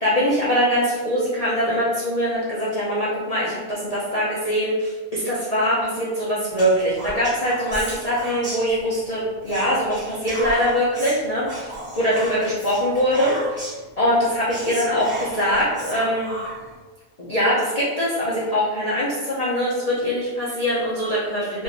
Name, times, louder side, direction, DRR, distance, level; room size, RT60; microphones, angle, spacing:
voice 1, 0.0-13.6 14.0-16.3 17.2-21.6, equal, 75° left, -8 dB, 0.3 m, -22 dB
Whispering, 6.5-9.1 9.4-13.9 14.2-14.3 14.5-16.7, right 1 dB, 10° right, 0.8 m, -35 dB
2.9 x 2.6 x 2.5 m, 1.4 s
omnidirectional pair, 1.5 m